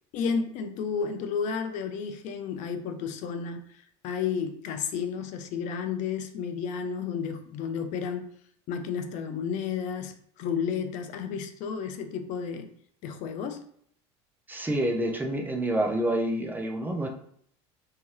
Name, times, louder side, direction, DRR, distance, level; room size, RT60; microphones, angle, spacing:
voice 1, 0.1-8.3 8.7-12.7 13.0-13.6, left 6 dB, 55° left, 7 dB, 0.4 m, -32 dB
voice 2, 14.5-17.1, right 1 dB, 10° right, 2 dB, 0.5 m, -28 dB
2.7 x 2.2 x 3.2 m, 0.64 s
supercardioid pair, 105°, 15 cm